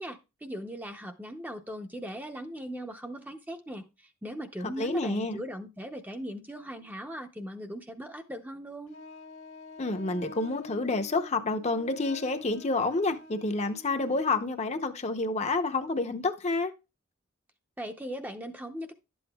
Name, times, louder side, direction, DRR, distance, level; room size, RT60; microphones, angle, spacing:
voice 1, 0.0-9.0 17.8-18.9, equal, 10° right, 0.6 m, -39 dB
voice 2, 4.6-5.4 9.8-16.7, left 3 dB, 30° left, 0.7 m, -29 dB
Wind instrument woodwind instrument, 8.9-14.4, left 2 dB, 80° left, 1.6 m, -47 dB
11.5 x 7.9 x 2.3 m
head